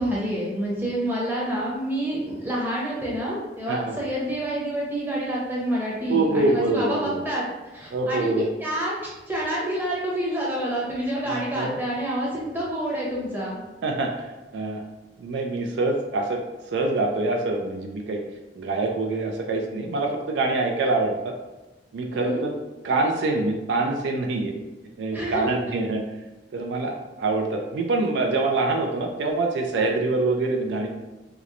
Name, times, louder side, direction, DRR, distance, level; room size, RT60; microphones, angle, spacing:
voice 1, 0.0-7.5 7.7-13.6 22.1-22.4 25.1-25.6 29.8-29.9, right 1 dB, 10° right, -6 dB, 0.7 m, -28 dB
voice 2, 6.1-7.2 7.9-8.4 11.2-11.8 13.8-14.8 15.2-16.4 16.7-18.2 18.6-21.3 21.9-22.5 22.8-24.5 25.0-26.0 26.5-30.9, right 2 dB, 80° right, 2 dB, 0.3 m, -25 dB
2.9 x 2.0 x 2.4 m, 1.1 s
head